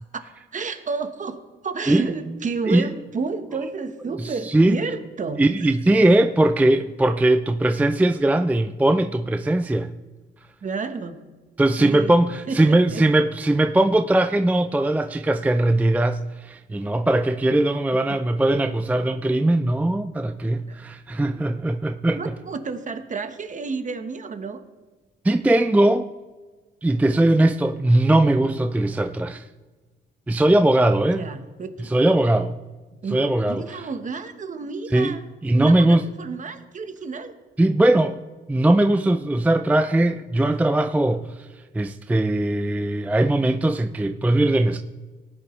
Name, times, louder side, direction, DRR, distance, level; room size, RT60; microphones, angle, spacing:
voice 1, 0.5-5.7 10.6-11.2 11.8-12.2 12.5-13.0 18.1-18.2 20.4-20.8 22.1-24.6 31.1-31.9 32.9-35.2 35.5-37.3, right 4 dB, 40° right, 1.2 m, -31 dB
voice 2, 4.2-4.8 5.4-9.9 11.6-22.3 25.2-26.1 26.8-29.5 30.3-31.2 31.9-32.5 33.1-33.9 34.9-35.2 35.4-36.1 37.6-38.2 38.5-41.5 41.7-44.8, right 1 dB, 10° right, 0.4 m, -20 dB
18.0 x 9.4 x 3.2 m
cardioid pair, 90°, 20 cm